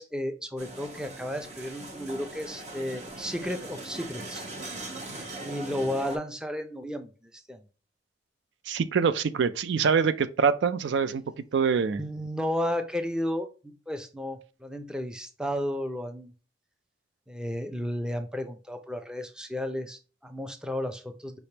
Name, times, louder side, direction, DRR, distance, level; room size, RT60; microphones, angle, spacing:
voice 1, 0.0-4.4 5.4-7.6 12.0-16.3 17.3-21.4, left 1 dB, 5° right, 0.5 m, -33 dB
sound 1, 0.6-6.2, right 2 dB, 40° right, 0.8 m, -40 dB
voice 2, 8.7-11.2 11.5-12.0, right 6 dB, 75° right, 0.4 m, -24 dB
5.0 x 3.4 x 2.8 m
head